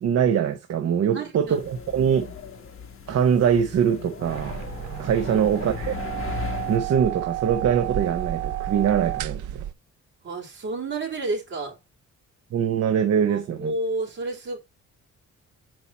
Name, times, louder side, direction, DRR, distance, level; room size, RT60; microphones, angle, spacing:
voice 1, 0.0-2.3 3.1-4.6 5.0-6.0 6.7-9.6 12.5-13.7, right 8 dB, 55° right, 0.9 m, -23 dB
voice 2, 1.1-1.9 5.2-5.5 10.2-11.8 13.3-14.6, right 2 dB, 40° right, 3.3 m, -31 dB
sound 1, 1.5-6.8, left 6 dB, 45° left, 1.3 m, -36 dB
sound 2, 4.2-9.7, right 13 dB, 85° right, 0.6 m, -31 dB
7.2 x 4.7 x 4.1 m
wide cardioid pair, 155°, 29 cm